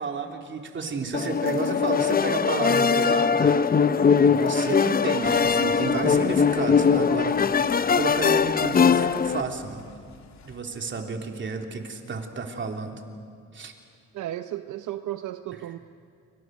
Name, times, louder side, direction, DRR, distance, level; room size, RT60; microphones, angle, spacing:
voice 1, 0.0-3.6 4.3-7.7 7.9-9.8 10.4-13.0 13.5-13.7, right 4 dB, 40° right, 3 dB, 3.3 m, -31 dB
sound 1, 1.1-9.4, left 6 dB, 30° left, 0.7 m, -21 dB
sound 2, 5.2-10.6, left 6 dB, 65° left, 2.9 m, -48 dB
voice 2, 14.1-15.8, right 13 dB, 75° right, 10 dB, 0.8 m, -34 dB
28.5 x 24.0 x 6.5 m, 2.3 s
cardioid pair, 90°, 30 cm